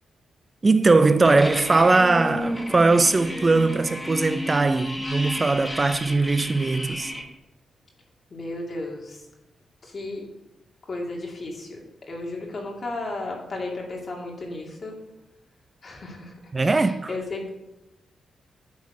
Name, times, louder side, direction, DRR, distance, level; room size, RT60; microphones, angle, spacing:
voice 1, 0.6-7.1 16.5-17.2, right 3 dB, 35° right, 0.5 m, -20 dB
sound 1, 1.2-7.2, left 1 dB, 20° left, 1.7 m, -32 dB
voice 2, 8.3-9.2 9.8-10.2 10.9-11.7 12.1-14.9 15.8-17.5, left 2 dB, 55° left, 2.4 m, -34 dB
9.4 x 3.7 x 6.6 m
supercardioid pair, 55°, 0 cm